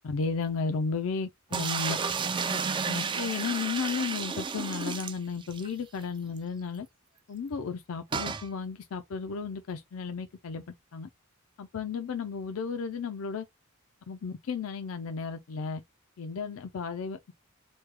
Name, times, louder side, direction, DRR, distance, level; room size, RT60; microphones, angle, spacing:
voice 1, 0.0-2.0 2.5-6.9 7.3-10.6 10.9-11.1 11.6-13.5 14.1-15.8 16.2-17.3, left 5 dB, 70° left, 0.4 m, -34 dB
sound 1, 1.5-5.7 6.0-6.1 6.4-6.5 8.1-8.5, right 5 dB, 25° right, 0.3 m, -32 dB
3.1 x 2.2 x 3.2 m
head